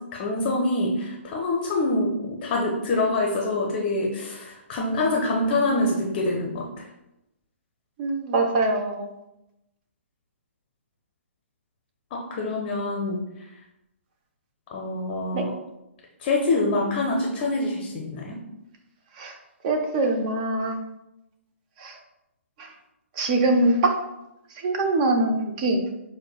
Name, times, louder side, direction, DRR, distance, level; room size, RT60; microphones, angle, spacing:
voice 1, 0.1-2.1 2.4-6.6 12.1-13.2 14.7-15.5 16.2-18.4, left 2 dB, 30° left, -1 dB, 0.6 m, -25 dB
voice 2, 8.0-9.1 15.3-15.5 19.2-19.3 19.6-20.8 21.8-21.9 23.2-23.9 24.6-25.9, right 2 dB, 35° right, 4 dB, 0.6 m, -23 dB
6.3 x 2.1 x 2.3 m, 0.91 s
figure-of-eight pair, 125°, 7 cm